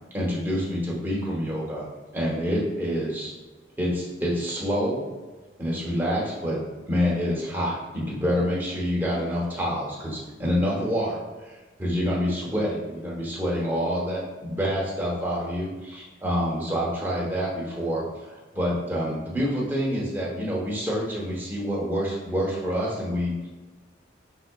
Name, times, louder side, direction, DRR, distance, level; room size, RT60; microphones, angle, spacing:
voice 1, 0.1-1.9 2.1-3.3 3.8-5.0 5.6-23.5, equal, 10° right, -5 dB, 0.9 m, -27 dB
5.6 x 3.7 x 2.3 m, 1.2 s
head